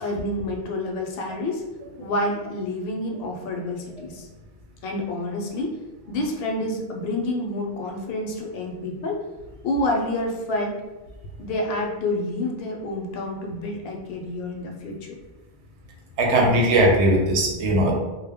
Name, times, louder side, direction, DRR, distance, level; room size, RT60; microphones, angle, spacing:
voice 1, 0.0-1.6 2.0-4.3 4.8-5.8 6.1-9.2 9.6-10.8 11.4-15.0, left 1 dB, 65° left, 1 dB, 0.7 m, -28 dB
voice 2, 16.2-17.9, right 1 dB, 85° right, 0 dB, 0.9 m, -19 dB
2.1 x 2.1 x 3.4 m, 1.1 s
omnidirectional pair, 1.1 m